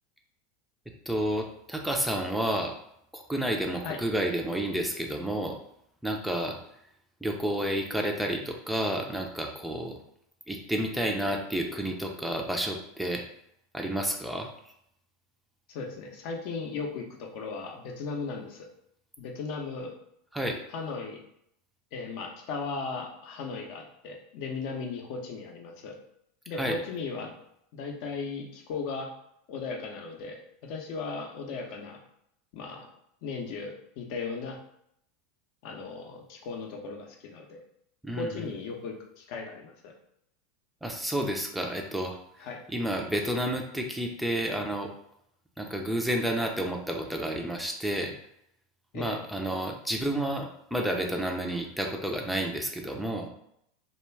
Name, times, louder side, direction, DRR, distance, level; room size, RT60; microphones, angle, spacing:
voice 1, 1.1-2.8 3.1-5.6 6.0-6.6 7.2-10.0 10.5-13.2 13.7-14.5 20.3-20.6 26.6-26.8 38.0-38.5 40.8-44.9 45.6-48.1 48.9-53.3, right 1 dB, 5° right, 2 dB, 0.4 m, -30 dB
voice 2, 15.7-18.7 19.2-19.9 20.7-21.2 21.9-25.9 26.5-27.3 27.7-29.1 29.5-32.0 32.5-32.9 33.2-34.6 35.6-37.6 38.2-39.9 42.4-42.6 48.9-49.1, left 4 dB, 60° left, 1 dB, 0.5 m, -37 dB
2.3 x 2.2 x 3.2 m, 0.73 s
hypercardioid pair, 95°, 0 cm